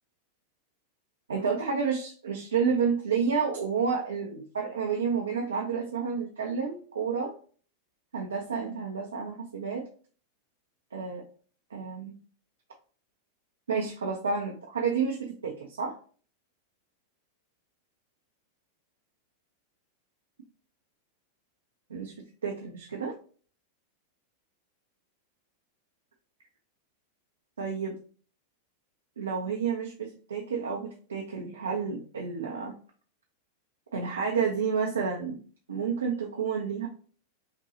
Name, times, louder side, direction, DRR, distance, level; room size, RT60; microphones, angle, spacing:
voice 1, 1.3-7.3 8.1-9.8 10.9-11.2 11.7-12.1 13.7-16.0 21.9-22.1 22.4-23.1 27.6-28.0 29.2-32.7 33.9-35.4 35.7-36.9, right 6 dB, 70° right, 0 dB, 0.6 m, -30 dB
5.6 x 2.3 x 2.6 m, 0.42 s
figure-of-eight pair, 90°, 0 cm